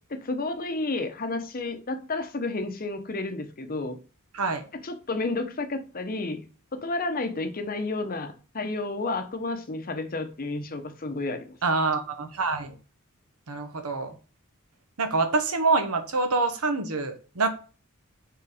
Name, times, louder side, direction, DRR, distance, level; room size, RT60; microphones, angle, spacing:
voice 1, 0.1-4.0 4.8-11.6, left 2 dB, 40° left, 0.8 m, -31 dB
voice 2, 11.6-12.7 13.5-14.1 15.0-17.5, right 3 dB, 80° right, 1.0 m, -26 dB
4.9 x 3.9 x 4.9 m
head